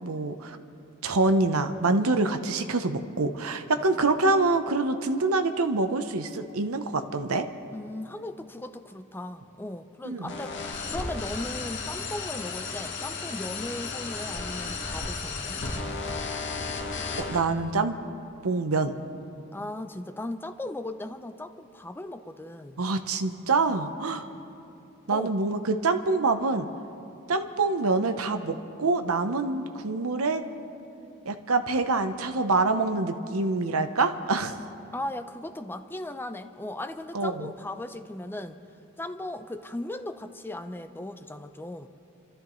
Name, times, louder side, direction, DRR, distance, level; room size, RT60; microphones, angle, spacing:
voice 1, 0.0-0.6 1.0-7.5 10.0-10.3 17.2-18.0 18.4-19.0 22.8-24.2 25.1-26.7 27.3-30.4 31.2-34.6 37.1-37.5, right 3 dB, 85° right, 8 dB, 0.9 m, -26 dB
voice 2, 7.7-15.6 19.5-22.8 25.1-25.3 34.9-38.6 39.0-41.9, left 1 dB, 10° left, 9 dB, 0.5 m, -37 dB
sound 1, 10.3-17.4, left 4 dB, 55° left, 1.5 m, -34 dB
29.5 x 13.0 x 3.2 m, 2.7 s
head